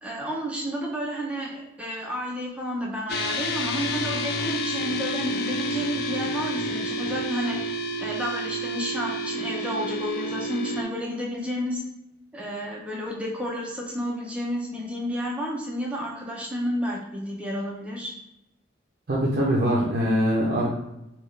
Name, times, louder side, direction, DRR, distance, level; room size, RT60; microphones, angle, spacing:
voice 1, 0.0-7.6 8.0-11.8 12.3-18.1, equal, 5° right, -3 dB, 0.5 m, -31 dB
sound 1, 3.1-10.8, equal, 55° left, 0.3 m, -29 dB
voice 2, 19.1-20.7, equal, 50° right, -4 dB, 0.5 m, -23 dB
3.5 x 2.3 x 3.1 m, 0.87 s
head